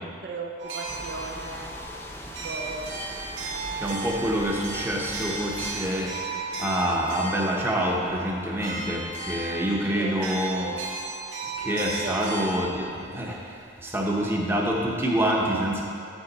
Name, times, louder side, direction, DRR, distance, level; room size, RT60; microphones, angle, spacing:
voice 1, 0.0-1.7 2.3-2.9 9.8-10.8 12.0-12.3, right 3 dB, 55° right, 2 dB, 0.5 m, -37 dB
sound 1, 0.6-12.6, right 3 dB, 75° right, 1.7 m, -35 dB
sound 2, 0.9-6.1, left 1 dB, 10° left, 0.5 m, -41 dB
voice 2, 3.8-10.7 11.6-15.8, equal, 10° right, -2 dB, 0.8 m, -27 dB
8.2 x 7.4 x 4.1 m, 2.5 s
head